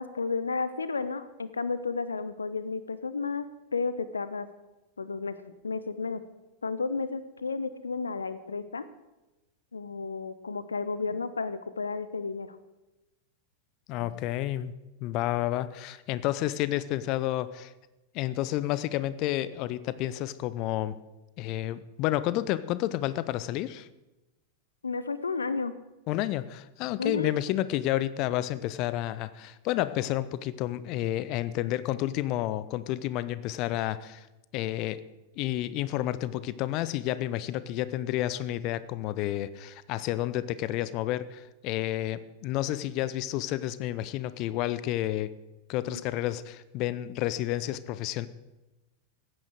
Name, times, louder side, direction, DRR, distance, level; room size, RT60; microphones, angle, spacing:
voice 1, 0.0-4.5 5.0-5.4 5.6-6.2 6.6-8.8 9.7-12.6 24.8-25.7 27.0-27.3 45.9-46.0, left 4 dB, 75° left, 14 dB, 0.7 m, -32 dB
voice 2, 13.9-14.7 15.0-17.7 18.1-21.0 21.4-23.9 26.1-34.3 34.5-35.0 35.4-45.3 45.7-48.3, left 14 dB, 40° left, 16 dB, 0.7 m, -30 dB
15.5 x 9.6 x 6.5 m, 1.0 s
figure-of-eight pair, 90°, 0 cm